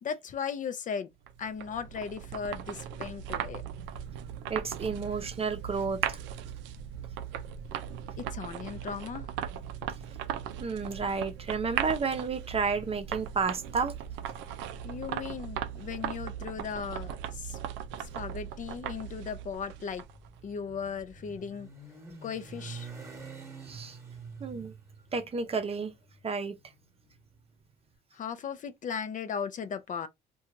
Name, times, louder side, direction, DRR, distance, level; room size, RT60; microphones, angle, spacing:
voice 1, 0.0-1.1 1.4-3.6 8.2-9.3 14.8-17.6 18.1-20.0 20.4-21.7 22.2-22.9 28.1-30.1, left 6 dB, 45° left, 0.5 m, -37 dB
sound 1, 1.3-20.3, right 10 dB, 80° right, 0.4 m, -38 dB
voice 2, 4.5-6.2 10.6-13.9 23.6-24.0 24.4-24.7 25.1-25.9 26.2-26.6, right 5 dB, 30° right, 0.6 m, -31 dB
Motorcycle, 19.5-27.7, right 4 dB, 15° right, 1.2 m, -47 dB
2.7 x 2.3 x 2.5 m
supercardioid pair, 75°, 19 cm